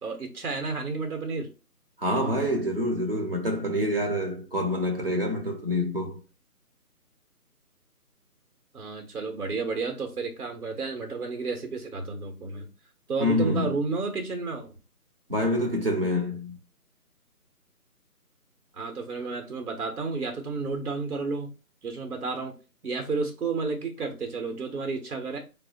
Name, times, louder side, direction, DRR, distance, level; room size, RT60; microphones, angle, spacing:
voice 1, 0.0-1.5 8.7-12.7 13.1-14.7 18.7-21.5 21.8-22.5 22.8-25.4, right 4 dB, 65° right, 1.0 m, -31 dB
voice 2, 2.0-6.2 13.2-13.7 15.3-16.6, left 1 dB, 40° right, 0.8 m, -26 dB
4.4 x 2.0 x 2.8 m
figure-of-eight pair, 160°, 47 cm